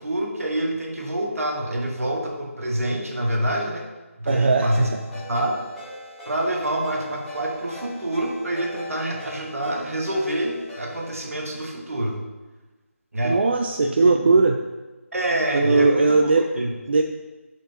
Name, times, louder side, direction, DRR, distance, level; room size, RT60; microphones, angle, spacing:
voice 1, 0.0-3.8 4.2-5.6 6.3-12.2 13.1-13.4 14.0-14.3 15.1-16.2 16.6-16.7, right 1 dB, 75° right, 0 dB, 1.4 m, -26 dB
Ringtone, 4.3-11.1, left 1 dB, 5° left, 1.3 m, -40 dB
voice 2, 4.3-4.9 13.2-14.6 15.5-16.4 16.9-17.0, right 3 dB, 45° right, 4 dB, 0.3 m, -18 dB
7.3 x 4.9 x 2.8 m, 1.2 s
figure-of-eight pair, 160°, 8 cm